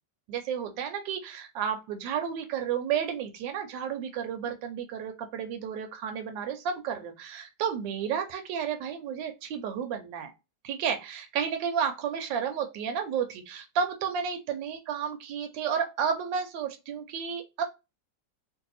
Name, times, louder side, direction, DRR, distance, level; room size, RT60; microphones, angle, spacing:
voice 1, 0.3-10.3 10.6-17.6, right 7 dB, 80° right, 5 dB, 1.3 m, -32 dB
3.0 x 2.6 x 4.0 m, 0.26 s
omnidirectional pair, 2.0 m